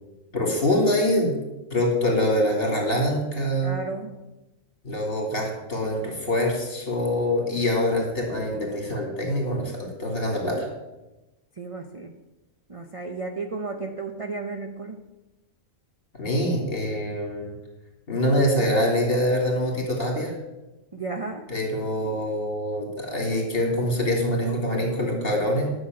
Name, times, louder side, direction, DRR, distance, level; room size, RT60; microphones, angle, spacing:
voice 1, 0.3-1.3 1.7-3.7 4.8-10.7 16.1-17.5 18.1-20.3 21.5-25.7, left 1 dB, 45° left, 0 dB, 3.0 m, -24 dB
voice 2, 3.6-4.2 11.6-12.2 12.7-15.0 20.9-21.5, right 3 dB, 30° right, 4 dB, 0.6 m, -33 dB
11.0 x 6.4 x 7.6 m, 1.0 s
omnidirectional pair, 1.4 m